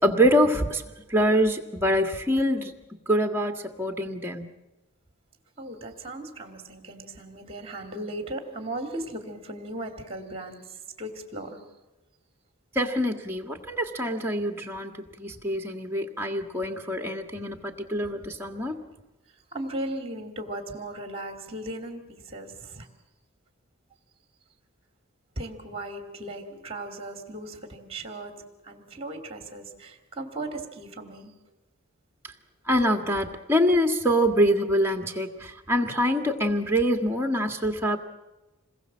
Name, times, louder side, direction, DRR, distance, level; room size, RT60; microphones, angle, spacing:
voice 1, 0.0-0.8 1.1-2.7 3.1-4.5 12.8-18.8 32.7-38.0, equal, 10° right, 4 dB, 1.8 m, -25 dB
voice 2, 5.6-11.7 19.5-22.9 25.4-31.3, right 1 dB, 25° right, 5 dB, 2.6 m, -37 dB
27.0 x 21.0 x 7.5 m, 1.1 s
head